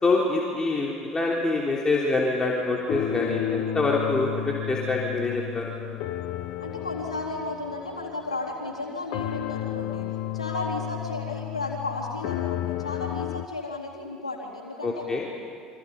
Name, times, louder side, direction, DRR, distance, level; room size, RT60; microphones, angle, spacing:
voice 1, 0.0-5.7 14.8-15.2, left 3 dB, 20° left, -3 dB, 3.5 m, -25 dB
sound 1, 2.6-8.8 9.1-13.5, left 12 dB, 55° left, 1.2 m, -32 dB
voice 2, 6.6-10.1 10.3-15.0, left 2 dB, 85° left, -2 dB, 3.8 m, -34 dB
29.0 x 25.5 x 5.4 m, 2.3 s
figure-of-eight pair, 65°, 3 cm